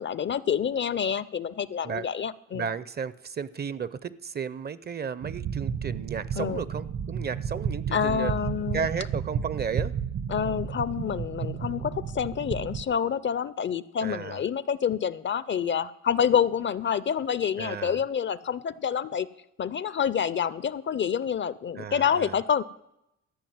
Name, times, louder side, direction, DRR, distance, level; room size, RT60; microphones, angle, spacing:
voice 1, 0.0-2.6 6.4-6.6 7.9-8.9 10.3-19.3 19.6-22.6, left 8 dB, 40° left, 18 dB, 0.5 m, -27 dB
voice 2, 2.5-8.3 8.7-9.9 14.0-14.4 17.6-18.0 21.8-22.4, right 6 dB, 35° right, 18 dB, 0.6 m, -33 dB
sound 1, 5.2-12.8, right 7 dB, 65° right, 1.3 m, -32 dB
13.5 x 5.8 x 9.3 m, 0.83 s
cardioid pair, 90°, 30 cm